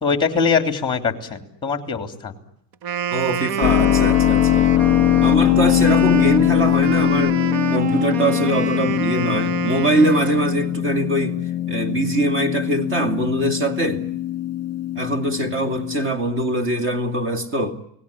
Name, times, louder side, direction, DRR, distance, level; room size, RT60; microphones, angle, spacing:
voice 1, 0.0-2.3, left 5 dB, 10° left, 6 dB, 3.0 m, -22 dB
Wind instrument woodwind instrument, 2.7-10.8, right 8 dB, 85° right, 1.3 m, -27 dB
voice 2, 3.1-4.7 5.2-7.4 7.7-11.4 11.7-14.0 15.0-17.8, right 2 dB, 25° right, 7 dB, 2.4 m, -22 dB
Keyboard (musical), 3.6-16.1, left 13 dB, 35° left, 1.7 m, -21 dB
29.0 x 19.5 x 9.9 m, 0.76 s
cardioid pair, 175°, 45 cm